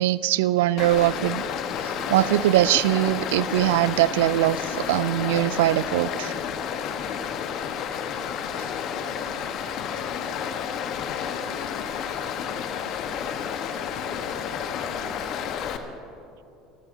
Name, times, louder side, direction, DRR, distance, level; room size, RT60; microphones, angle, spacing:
voice 1, 0.0-1.4 2.1-6.3, right 15 dB, 75° right, 19 dB, 0.3 m, -22 dB
Stream, 0.8-15.8, left 8 dB, 55° left, 1.1 m, -31 dB
voice 2, 8.5-13.2 13.7-15.5, left 3 dB, 85° left, -1 dB, 2.7 m, -46 dB
26.5 x 14.0 x 2.7 m, 2.8 s
hypercardioid pair, 70°, 0 cm